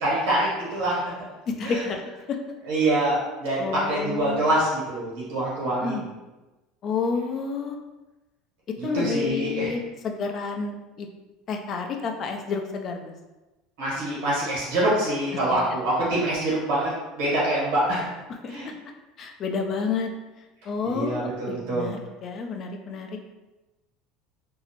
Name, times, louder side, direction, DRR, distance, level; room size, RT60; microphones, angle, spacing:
voice 1, 0.0-1.1 1.6-1.8 2.7-6.0 8.8-9.7 13.8-18.1 18.5-18.7 20.9-21.9, right 1 dB, 80° right, -7 dB, 1.3 m, -25 dB
voice 2, 1.5-2.0 2.3-2.4 3.6-4.5 5.8-6.1 6.8-7.8 8.8-11.1 11.5-13.1 15.5-15.6 18.4-18.6 19.2-20.1 20.7-23.1, left 5 dB, 45° left, 3 dB, 0.4 m, -30 dB
2.6 x 2.0 x 2.9 m, 1.1 s
supercardioid pair, 95°, 0 cm